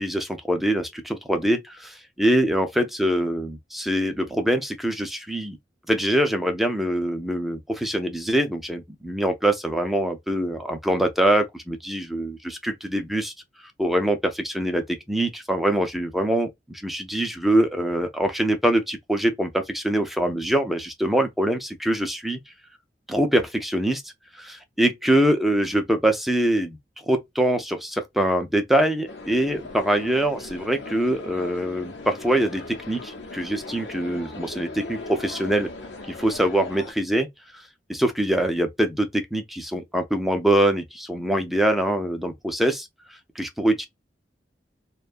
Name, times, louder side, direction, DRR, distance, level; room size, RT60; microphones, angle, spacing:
voice 1, 0.0-5.6 5.9-13.3 13.8-22.4 23.1-26.8 27.1-35.7 36.1-37.3 37.5-37.6 37.9-42.9 43.4-43.9, right 1 dB, ahead, 0.5 m, -24 dB
sound 1, 29.1-36.9, left 3 dB, 80° left, 0.8 m, -39 dB
2.5 x 2.3 x 2.4 m
head